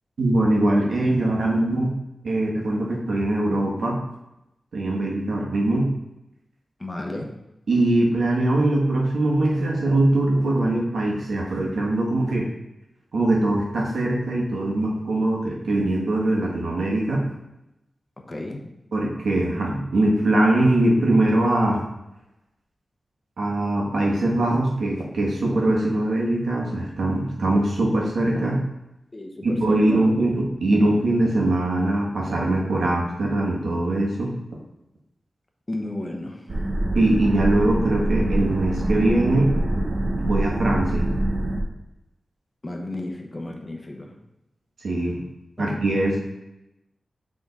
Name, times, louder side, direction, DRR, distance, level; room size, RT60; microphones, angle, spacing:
voice 1, 0.2-1.9 2.2-4.0 4.7-5.9 7.7-12.5 13.1-17.2 18.9-21.8 23.4-28.6 29.4-34.3 36.9-39.5 40.2-41.1 44.8-45.2 45.6-46.2, right 1 dB, 85° right, -3 dB, 1.5 m, -22 dB
voice 2, 6.8-7.3 18.3-18.7 29.1-30.1 35.7-36.4 42.6-44.2 45.6-45.7, left 1 dB, 25° left, 2 dB, 0.8 m, -33 dB
sound 1, 36.5-41.6, right 1 dB, 35° right, 1.0 m, -24 dB
6.8 x 3.7 x 4.1 m, 0.90 s
wide cardioid pair, 140°, 0 cm